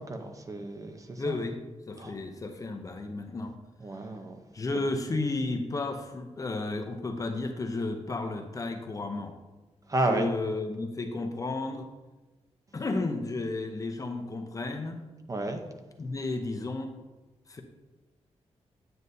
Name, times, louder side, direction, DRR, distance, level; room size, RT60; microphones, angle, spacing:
voice 1, 0.0-1.4 2.0-2.2 3.8-4.4 9.9-10.3 15.3-15.6, right 2 dB, 30° right, 5 dB, 0.7 m, -31 dB
voice 2, 1.2-1.6 1.9-3.5 4.5-9.4 10.1-11.9 12.7-15.0 16.0-16.9 17.5-17.6, left 2 dB, 30° left, 6 dB, 0.7 m, -33 dB
9.4 x 7.9 x 2.7 m, 1.1 s
wide cardioid pair, 160°, 12 cm